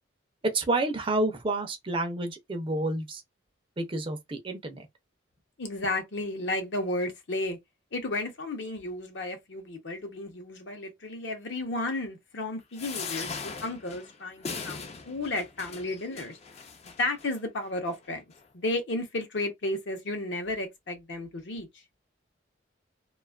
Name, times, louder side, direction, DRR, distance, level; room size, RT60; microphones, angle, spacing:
voice 1, 0.4-3.2 3.8-4.9, right 2 dB, 25° right, 0.5 m, -29 dB
voice 2, 5.6-7.6 7.9-16.4 16.8-18.2 18.5-21.7, left 2 dB, 60° left, 0.8 m, -33 dB
sound 1, 12.7-17.3 17.9-18.0 18.3-18.4, left 5 dB, 35° left, 0.4 m, -39 dB
2.4 x 2.3 x 2.3 m
head